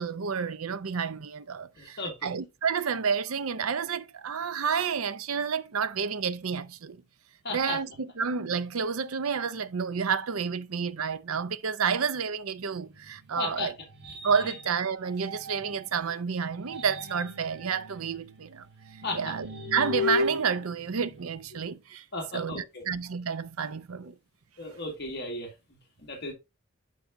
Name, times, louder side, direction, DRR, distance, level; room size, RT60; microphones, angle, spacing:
voice 1, 0.0-7.0 7.5-13.7 14.2-18.7 18.9-22.0 22.3-24.1, right 6 dB, 85° right, 0.6 m, -30 dB
voice 2, 1.8-2.3 7.4-7.8 13.4-13.7 19.0-19.3 22.1-22.8 24.6-25.5 26.0-26.3, left 2 dB, 50° left, 1.9 m, -35 dB
sound 1, 12.8-16.0 16.5-21.7, left 2 dB, 55° right, 2.0 m, -36 dB
11.0 x 4.7 x 2.6 m
head